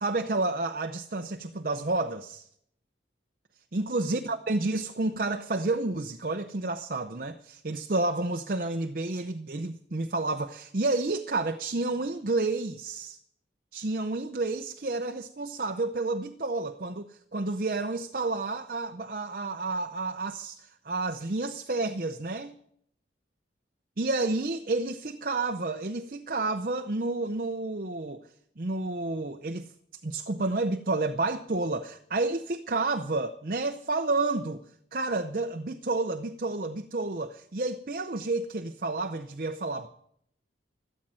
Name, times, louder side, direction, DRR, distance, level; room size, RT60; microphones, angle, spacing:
voice 1, 0.0-2.5 3.7-13.2 13.7-22.5 24.0-28.2 28.6-29.7 30.0-34.6 34.9-39.9, right 2 dB, 50° right, 7 dB, 0.7 m, -30 dB
13.5 x 13.0 x 7.6 m, 0.70 s
head